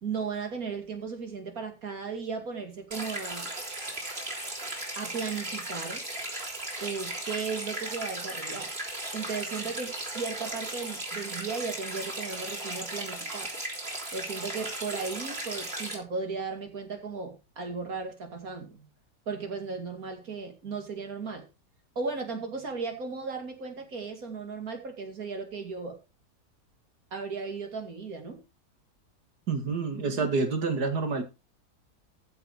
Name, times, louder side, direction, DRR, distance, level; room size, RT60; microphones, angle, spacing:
voice 1, 0.0-3.5 5.0-6.0 6.8-8.7 9.1-13.5 14.1-18.9 19.3-21.4 22.0-26.0 27.1-28.4, right 5 dB, 60° right, 2.9 m, -36 dB
sound 1, 2.9-16.0, right 2 dB, 40° right, 3.5 m, -36 dB
voice 2, 29.5-31.2, right 4 dB, 85° right, 2.4 m, -28 dB
14.5 x 5.7 x 4.7 m
omnidirectional pair, 1.7 m